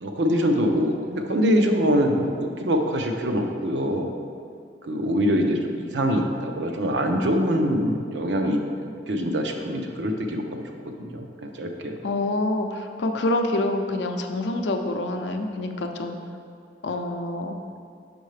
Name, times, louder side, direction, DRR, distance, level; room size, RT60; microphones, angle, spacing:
voice 1, 0.0-4.1 4.8-8.6 9.1-12.0, equal, 85° right, 3 dB, 0.6 m, -24 dB
voice 2, 12.0-16.2 16.8-17.6, left 2 dB, 85° left, 5 dB, 0.5 m, -26 dB
6.4 x 5.2 x 3.2 m, 2.3 s
head